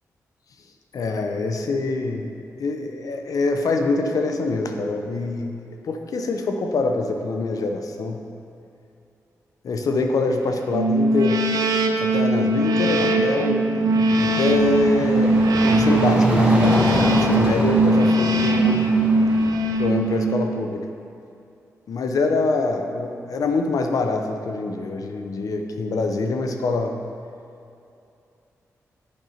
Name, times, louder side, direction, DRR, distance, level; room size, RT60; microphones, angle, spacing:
voice 1, 0.9-2.3 2.6-8.2 9.6-11.4 12.0-18.8 19.8-20.9 21.9-27.0, left 3 dB, 70° left, 5 dB, 0.7 m, -25 dB
sound 1, 10.7-20.6, right 2 dB, 80° right, 0.5 m, -20 dB
sound 2, 13.8-19.8, right 1 dB, 15° right, 1.5 m, -26 dB
8.3 x 5.3 x 4.4 m, 2.6 s
cardioid pair, 55°, 6 cm